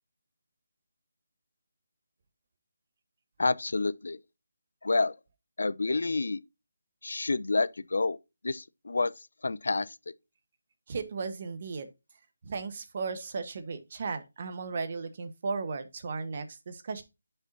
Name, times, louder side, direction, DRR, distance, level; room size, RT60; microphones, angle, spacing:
voice 1, 3.4-4.2 4.8-5.1 5.6-6.4 7.0-8.2 8.4-10.0, left 3 dB, 70° left, 0.5 m, -29 dB
voice 2, 10.9-11.9 12.4-17.0, right 4 dB, 45° right, 1.2 m, -35 dB
10.0 x 5.7 x 2.7 m
figure-of-eight pair, 160°, 0 cm